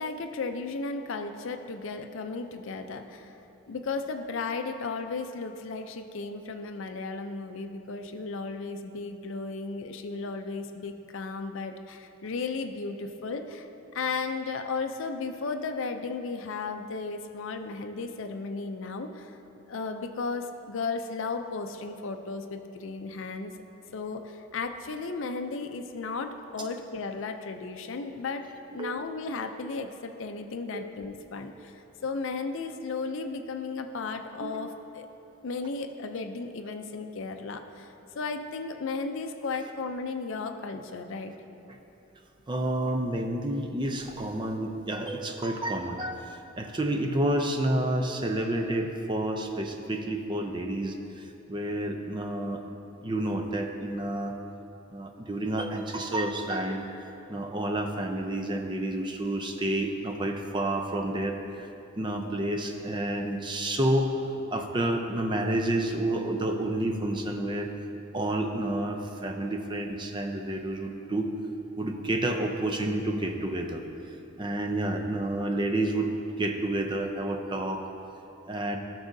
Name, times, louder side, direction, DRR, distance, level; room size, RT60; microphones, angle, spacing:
voice 1, 0.0-3.4 3.7-13.7 13.9-19.4 19.7-23.5 23.9-35.1 35.4-41.3, left 4 dB, 60° left, 6 dB, 0.5 m, -35 dB
voice 2, 42.5-52.6 53.0-54.3 54.9-61.7 62.0-67.7 68.1-71.3 71.8-73.8 74.4-76.1 76.4-77.9 78.5-78.8, right 1 dB, 20° right, 4 dB, 0.4 m, -30 dB
13.0 x 6.2 x 2.6 m, 3.0 s
head